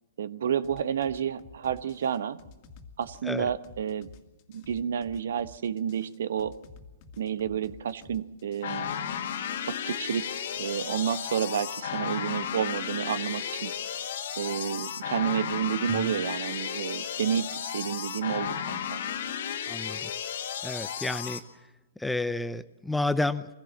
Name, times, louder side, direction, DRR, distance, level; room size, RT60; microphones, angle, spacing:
voice 1, 0.2-2.4 3.0-4.1 4.5-6.5 7.2-8.9 9.7-13.7 14.4-19.0, right 8 dB, 65° right, 14 dB, 1.2 m, -30 dB
sound 1, 0.6-8.6, left 4 dB, 45° left, 2.3 m, -51 dB
sound 2, 8.6-21.4, left 8 dB, 60° left, 2.0 m, -34 dB
voice 2, 19.7-20.1 20.6-21.4 22.0-23.5, left 2 dB, 5° left, 14 dB, 0.7 m, -30 dB
23.5 x 16.0 x 7.3 m, 1.0 s
hypercardioid pair, 120°, 0 cm